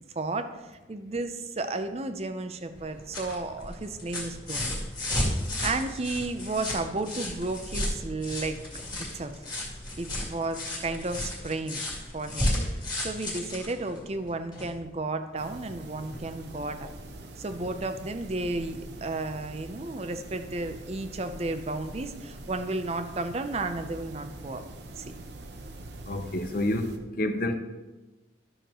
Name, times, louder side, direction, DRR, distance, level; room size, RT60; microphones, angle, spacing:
voice 1, 0.2-4.7 5.6-8.6 9.0-9.3 10.0-16.9 17.4-24.6 25.0-25.1, right 2 dB, 35° right, 9 dB, 0.5 m, -33 dB
sound 1, 2.8-14.8 16.1-16.2, left 1 dB, 20° left, 2.2 m, -33 dB
sound 2, 15.4-27.0, right 2 dB, 65° right, 0.8 m, -44 dB
voice 2, 26.1-26.9 27.2-27.5, left 1 dB, 50° left, 6 dB, 0.7 m, -28 dB
12.5 x 6.4 x 3.0 m, 1.2 s
head